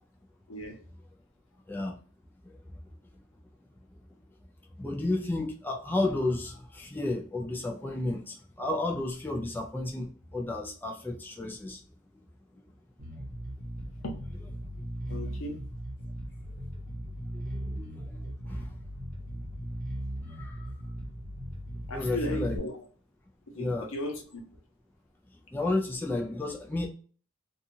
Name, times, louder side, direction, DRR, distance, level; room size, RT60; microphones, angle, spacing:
voice 1, 0.5-0.8 14.0-14.2 15.1-15.6 18.2-18.3 21.9-22.7 23.5-24.4, left 1 dB, 70° left, 0.8 m, -36 dB
voice 2, 4.8-11.8 12.5-12.6 16.6-16.7 17.3-18.7 20.3-20.7 21.9-22.6 23.6-23.9 25.5-26.9, left 2 dB, 10° left, 0.3 m, -32 dB
Bass guitar, 13.0-22.6, equal, 35° right, 0.8 m, -38 dB
2.7 x 2.3 x 2.6 m
head